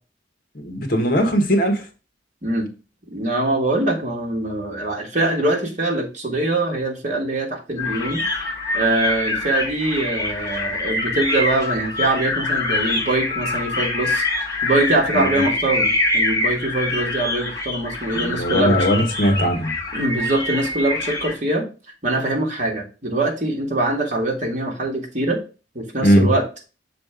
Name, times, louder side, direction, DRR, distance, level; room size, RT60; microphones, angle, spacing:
voice 1, 0.5-1.8 15.1-15.4 18.1-19.7 26.0-26.3, equal, 55° left, 1.3 m, -19 dB
voice 2, 3.1-8.4 8.7-14.3 14.6-18.9 19.9-21.6 22.0-25.4 25.7-26.4, right 2 dB, 45° right, 1.7 m, -23 dB
sound 1, 7.8-21.3, left 2 dB, 20° left, 2.0 m, -25 dB
6.5 x 3.4 x 5.0 m
head